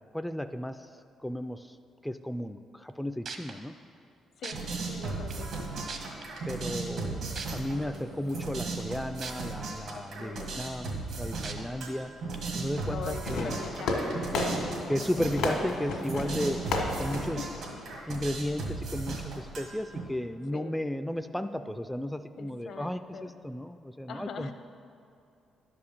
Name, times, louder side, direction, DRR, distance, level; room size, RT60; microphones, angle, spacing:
voice 1, 0.1-0.9 1.2-1.8 2.0-3.7 6.5-12.1 12.6-13.6 14.9-16.6 17.0-17.4 18.1-24.5, left 1 dB, 5° left, 9 dB, 0.3 m, -34 dB
sound 1, 2.9-3.0 3.3-3.5 4.4-4.5 5.3-5.4 5.9-6.2 7.4-7.5 9.2-9.3 9.8-9.9 11.4-11.5 12.3-12.4, right 5 dB, 55° right, 0.9 m, -38 dB
sound 2, 4.5-20.0, right 3 dB, 80° right, 1.9 m, -37 dB
voice 2, 4.9-5.7 9.9-10.7 12.9-14.5 17.4-17.8 18.6-18.7 20.5-20.7 22.4-23.3 24.1-24.5, left 6 dB, 65° left, 8 dB, 0.7 m, -42 dB
Fireworks, 13.2-18.3, left 2 dB, 85° left, 1.5 m, -33 dB
10.5 x 4.9 x 7.1 m, 2.5 s
cardioid pair, 90°, 0 cm